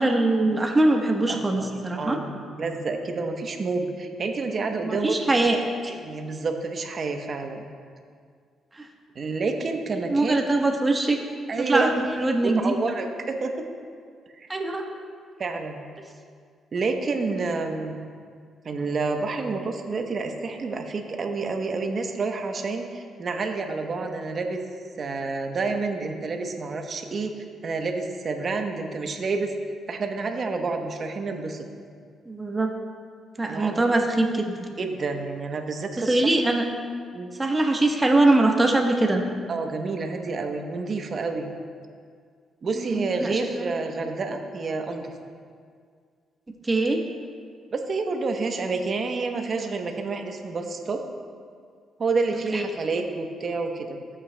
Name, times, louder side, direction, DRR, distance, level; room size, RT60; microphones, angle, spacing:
voice 1, 0.0-2.2 4.8-5.9 8.8-8.9 10.1-11.2 11.6-12.7 14.5-14.9 32.3-32.7 33.4-34.7 36.0-36.6 37.4-39.2 42.8-43.7 46.6-47.0 52.5-52.6, right 2 dB, 20° right, 2 dB, 1.1 m, -22 dB
voice 2, 1.3-1.7 2.0-5.1 5.9-7.7 9.1-10.4 11.5-11.9 12.4-13.6 14.3-14.5 15.4-15.8 16.7-18.0 18.6-24.6 25.0-29.5 29.9-31.6 33.4-33.9 34.8-36.3 37.1-37.3 39.5-41.5 42.6-45.1 47.7-51.0 52.0-54.0, right 3 dB, 45° right, 4 dB, 0.9 m, -29 dB
13.5 x 8.5 x 2.2 m, 2.1 s
cardioid pair, 90°, 0 cm